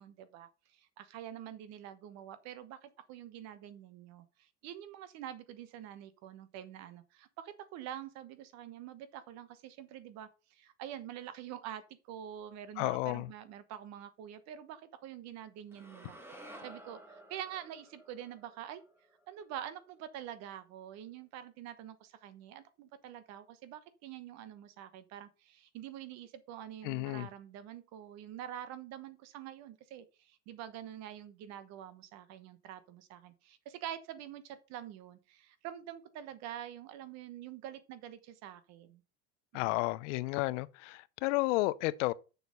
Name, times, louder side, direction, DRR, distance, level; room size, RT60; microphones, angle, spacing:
voice 1, 0.0-16.2 16.6-18.8 19.3-39.0 39.5-39.7, right 11 dB, 45° right, 1.1 m, -46 dB
voice 2, 12.8-13.3 26.8-27.3 39.5-42.1, left 20 dB, 85° left, 0.7 m, -32 dB
sound 1, 15.7-19.9, right 1 dB, 5° right, 1.2 m, -53 dB
6.8 x 6.6 x 5.4 m
cardioid pair, 165°, 36 cm